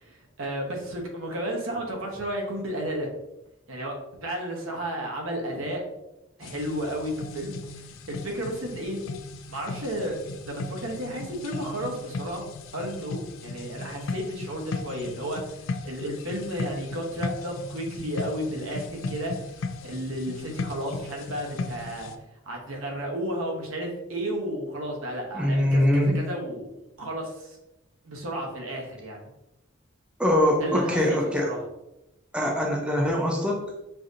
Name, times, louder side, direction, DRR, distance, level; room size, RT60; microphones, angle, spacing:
voice 1, 0.0-3.1 3.7-3.9 4.2-5.8 6.4-9.0 9.5-10.1 10.4-12.4 12.7-15.6 15.8-19.3 19.8-22.1 22.5-26.7 27.0-27.6 28.0-29.2 30.6-31.6, equal, 80° right, 0 dB, 0.9 m, -32 dB
sound 1, 6.4-22.2, left 3 dB, 70° left, 0.4 m, -37 dB
voice 2, 25.3-26.2 30.2-31.5 32.3-33.6, left 1 dB, 5° right, -1 dB, 0.5 m, -23 dB
5.6 x 2.7 x 2.5 m, 0.91 s
head